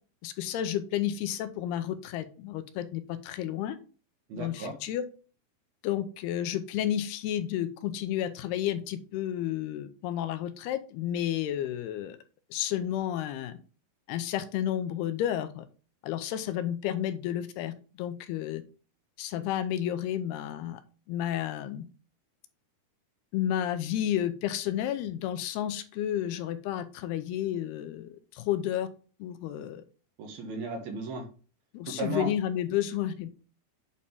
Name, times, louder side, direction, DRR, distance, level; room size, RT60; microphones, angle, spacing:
voice 1, 0.2-3.8 4.3-5.0 5.8-12.2 12.5-13.6 14.1-15.7 16.0-18.6 19.2-20.8 21.1-21.8 23.3-28.9 29.2-29.8 31.7-33.3, left 11 dB, 85° left, 10 dB, 2.7 m, -31 dB
voice 2, 4.3-4.7 30.2-31.2 31.9-32.3, right 2 dB, 70° right, 2 dB, 3.2 m, -35 dB
8.3 x 4.3 x 3.6 m, 0.36 s
omnidirectional pair, 4.6 m